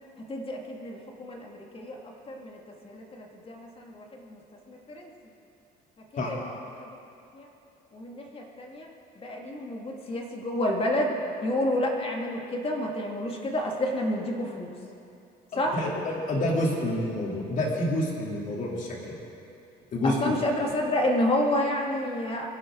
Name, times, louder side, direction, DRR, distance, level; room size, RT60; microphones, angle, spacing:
voice 1, 0.3-2.0 2.3-2.6 2.8-4.4 4.7-5.1 6.3-6.6 7.3-7.5 7.9-8.9 9.2-11.1 11.4-14.8 15.6-15.8 20.0-22.5, left 1 dB, 35° left, 0 dB, 2.4 m, -29 dB
voice 2, 15.5-19.2 19.9-20.3, left 1 dB, 50° left, -3 dB, 3.5 m, -28 dB
23.0 x 11.5 x 4.0 m, 2.6 s
cardioid pair, 110°, 17 cm